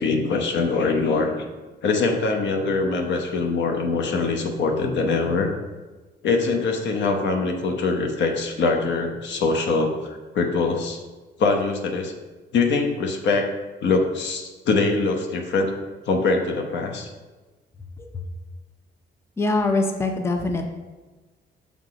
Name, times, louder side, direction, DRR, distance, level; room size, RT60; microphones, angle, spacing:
voice 1, 0.0-1.4 1.8-5.5 6.2-11.0 11.4-12.1 12.5-13.4 13.8-15.7 16.1-17.1, left 3 dB, 75° left, 3 dB, 0.9 m, -23 dB
voice 2, 19.4-20.6, left 2 dB, 15° left, 4 dB, 0.6 m, -23 dB
5.8 x 3.6 x 4.9 m, 1.2 s
cardioid pair, 110°, 19 cm